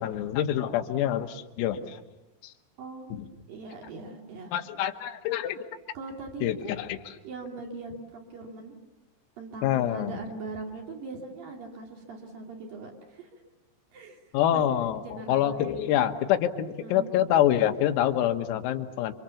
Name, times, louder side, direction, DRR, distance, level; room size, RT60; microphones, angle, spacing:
voice 1, 0.0-2.0 2.4-2.5 3.1-3.3 4.5-5.7 6.4-7.0 9.6-10.2 14.3-19.1, left 11 dB, 85° left, 6 dB, 4.0 m, -26 dB
voice 2, 2.8-4.5 5.9-6.7 7.2-8.8 9.4-13.4 13.9-14.2 14.5-16.0 16.8-17.1, right 3 dB, 50° right, 1 dB, 3.8 m, -41 dB
28.5 x 25.5 x 7.2 m, 1.1 s
omnidirectional pair, 5.9 m